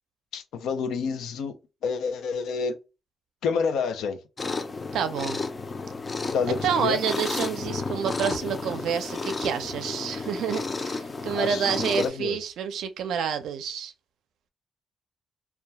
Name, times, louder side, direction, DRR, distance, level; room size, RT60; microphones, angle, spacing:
voice 1, 0.3-1.6 1.8-2.8 3.4-4.2 6.3-7.0 11.3-12.4, left 5 dB, 90° left, 0.4 m, -28 dB
sound 1, 4.4-12.1, left 3 dB, 30° left, 0.4 m, -32 dB
voice 2, 4.9-5.4 6.6-13.9, right 7 dB, 90° right, 0.4 m, -28 dB
2.3 x 2.2 x 2.8 m
cardioid pair, 100°, 0 cm